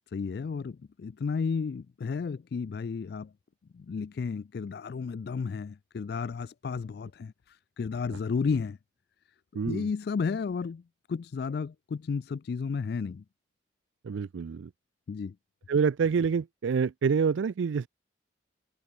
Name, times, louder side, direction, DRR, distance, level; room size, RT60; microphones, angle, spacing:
voice 1, 0.1-3.3 3.7-8.8 9.6-10.8 11.1-13.2 15.1-15.3, left 5 dB, 55° left, 0.3 m, -33 dB
voice 2, 9.6-9.9 14.0-14.7 15.7-17.9, right 6 dB, 75° right, 0.4 m, -27 dB
head